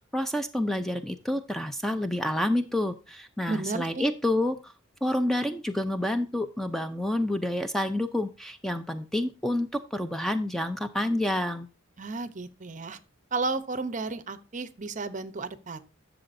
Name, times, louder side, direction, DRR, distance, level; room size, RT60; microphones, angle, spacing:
voice 1, 0.1-4.7 5.0-11.7, left 1 dB, ahead, 0.4 m, -28 dB
voice 2, 3.5-4.0 12.0-13.0 13.3-15.8, right 3 dB, 40° right, 0.7 m, -33 dB
11.5 x 6.9 x 2.6 m
head